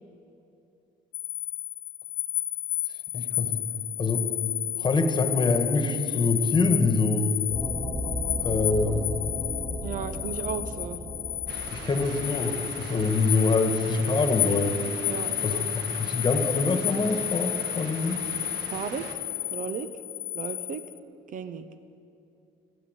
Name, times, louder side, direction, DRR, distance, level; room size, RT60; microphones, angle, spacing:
sound 1, 1.1-21.0, left 12 dB, 85° left, 0.9 m, -32 dB
voice 1, 3.1-3.6 4.0-4.3 4.8-7.3 8.4-9.0 11.7-14.8 15.4-18.2, left 3 dB, 25° left, 6 dB, 1.6 m, -25 dB
sound 2, 7.5-13.1, equal, 10° right, 4.0 m, -35 dB
voice 2, 9.8-11.0 15.1-15.6 18.7-19.1 19.5-19.9 20.3-20.8 21.3-21.7, right 7 dB, 50° right, 11 dB, 0.8 m, -34 dB
sound 3, 11.5-19.1, right 4 dB, 85° right, 1.7 m, -41 dB
13.5 x 13.0 x 8.1 m, 2.7 s
cardioid pair, 110°, 17 cm